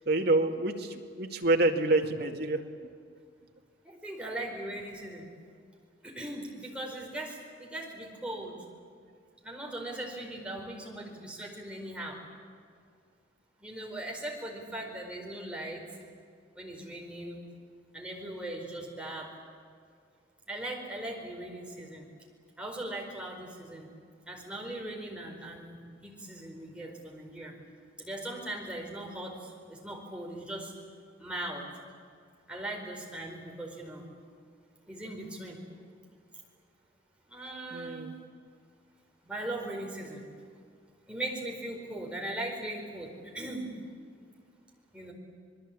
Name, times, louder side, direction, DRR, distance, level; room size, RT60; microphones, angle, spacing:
voice 1, 0.0-2.6 37.7-38.1, right 2 dB, 60° right, 3 dB, 2.1 m, -27 dB
voice 2, 3.8-5.2 6.0-8.6 9.4-12.2 13.6-15.9 16.5-17.4 17.9-19.3 20.5-22.1 22.6-23.9 24.3-25.8 26.0-27.5 28.0-30.7 31.2-31.7 32.5-34.0 34.9-35.6 37.3-38.1 39.2-40.2 41.1-43.7 44.9-45.1, right 1 dB, 5° right, -1 dB, 4.7 m, -39 dB
27.5 x 21.0 x 8.6 m, 2.2 s
head